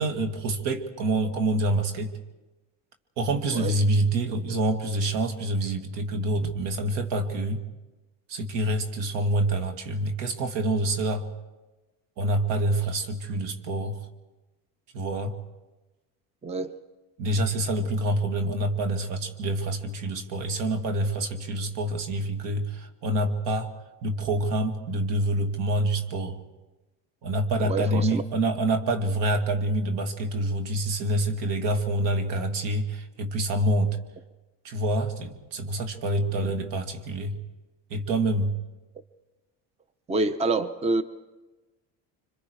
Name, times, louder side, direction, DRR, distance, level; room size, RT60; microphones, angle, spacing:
voice 1, 0.0-2.1 3.2-7.6 8.3-11.3 12.2-14.0 14.9-15.4 17.2-23.7 24.0-26.4 27.2-34.0 34.6-37.4 37.9-38.6, right 1 dB, 75° right, 6 dB, 2.3 m, -26 dB
voice 2, 16.4-16.8 27.6-28.2 36.4-36.5 40.1-41.0, right 3 dB, 15° right, 12 dB, 0.8 m, -27 dB
26.5 x 25.0 x 4.9 m, 1.1 s
cardioid pair, 110°, 43 cm